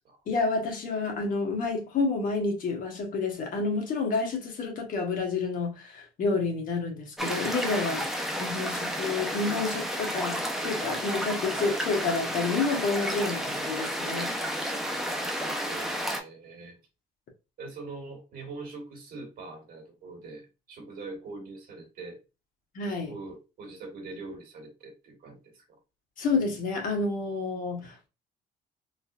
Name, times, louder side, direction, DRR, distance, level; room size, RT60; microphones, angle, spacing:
voice 1, 0.3-14.4 22.7-23.1 26.2-28.1, left 3 dB, 55° left, 1.3 m, -29 dB
sound 1, 7.2-16.2, equal, ahead, 0.7 m, -31 dB
voice 2, 15.6-16.8 17.6-22.2 23.0-25.8, right 3 dB, 60° right, 1.8 m, -43 dB
3.8 x 2.6 x 2.5 m
cardioid pair, 110°, 17 cm